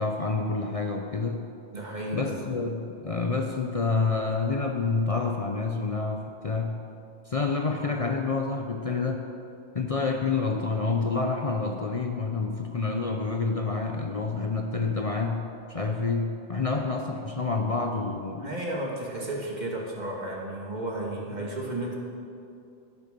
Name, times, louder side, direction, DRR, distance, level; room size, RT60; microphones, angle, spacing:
voice 1, 0.0-1.4 2.1-6.8 7.3-9.2 9.7-18.5 21.3-21.5, left 4 dB, 40° left, 3 dB, 0.7 m, -28 dB
voice 2, 1.7-2.4 18.4-22.0, right 1 dB, 45° right, -2 dB, 2.2 m, -33 dB
12.5 x 9.8 x 6.7 m, 2.6 s
omnidirectional pair, 1.1 m